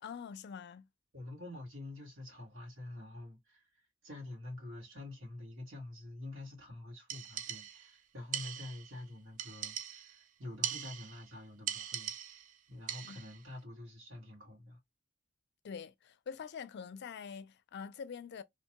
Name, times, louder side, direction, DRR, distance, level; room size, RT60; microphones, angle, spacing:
voice 1, 0.0-0.9 13.0-13.2 15.6-18.4, left 6 dB, 55° left, 0.4 m, -45 dB
voice 2, 1.1-14.8, left 2 dB, 85° right, 1.7 m, -47 dB
sound 1, 7.1-7.9 8.3-9.0 9.4-10.2 10.6-11.3 11.7-12.5 12.9-13.4, right 9 dB, 40° right, 0.3 m, -40 dB
3.0 x 2.2 x 2.8 m
head